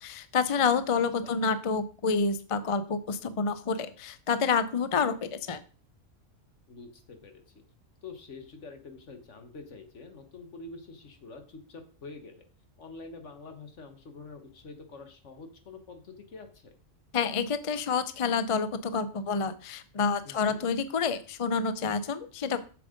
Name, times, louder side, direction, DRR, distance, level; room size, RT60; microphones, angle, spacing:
voice 1, 0.0-5.6 17.1-22.6, left 5 dB, 40° left, 13 dB, 0.5 m, -28 dB
voice 2, 0.9-1.4 6.7-7.6 8.0-12.5 12.8-16.7 20.2-20.7, left 3 dB, 65° left, 7 dB, 1.7 m, -46 dB
7.4 x 6.9 x 5.1 m, 0.40 s
omnidirectional pair, 1.3 m